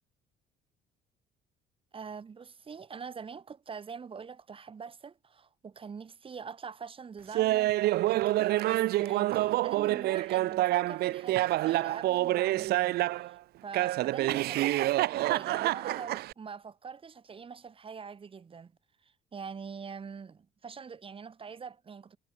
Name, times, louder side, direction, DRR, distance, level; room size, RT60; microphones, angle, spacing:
voice 1, 1.9-12.9 13.2-13.4 13.6-18.7 19.0-22.2, right 6 dB, 30° right, 3.2 m, -44 dB
Laughter, 7.4-13.3 13.7-16.3, right 16 dB, 70° right, 0.6 m, -27 dB
cardioid pair, 110°, 17 cm